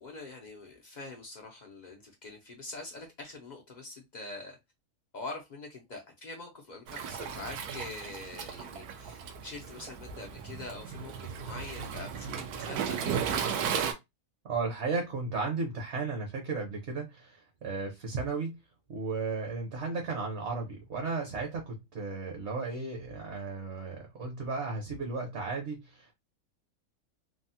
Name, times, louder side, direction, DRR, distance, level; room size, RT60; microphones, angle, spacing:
voice 1, 0.0-4.6 5.1-13.8, left 2 dB, 65° left, 0.4 m, -44 dB
Waves surf, 6.9-13.9, right 7 dB, 85° right, 1.1 m, -35 dB
voice 2, 14.4-18.6 18.9-26.1, right 4 dB, 55° right, 1.0 m, -34 dB
3.3 x 2.1 x 2.7 m
omnidirectional pair, 1.6 m